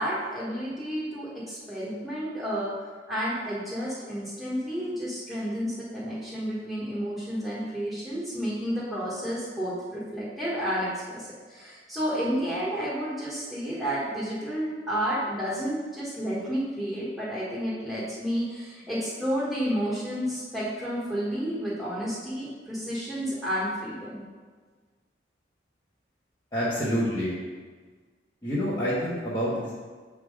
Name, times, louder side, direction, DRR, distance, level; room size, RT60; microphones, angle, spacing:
voice 1, 0.0-2.7 3.1-24.2, equal, ahead, -10 dB, 1.5 m, -31 dB
voice 2, 26.5-27.4 28.4-29.7, equal, 25° left, -11 dB, 1.3 m, -27 dB
7.6 x 3.7 x 4.9 m, 1.5 s
head